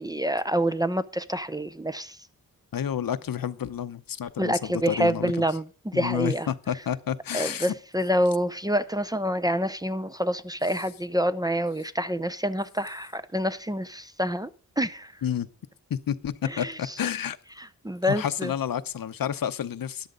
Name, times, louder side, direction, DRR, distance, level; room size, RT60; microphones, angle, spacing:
voice 1, 0.0-2.2 4.4-6.5 7.3-14.5 14.8-15.1 16.4-16.9 17.6-18.5, equal, 10° right, 0.6 m, -27 dB
voice 2, 2.7-5.3 5.9-7.7 15.2-15.5 15.9-17.4 18.1-20.1, left 9 dB, 75° left, 0.8 m, -30 dB
13.5 x 11.0 x 3.8 m
wide cardioid pair, 105°, 35 cm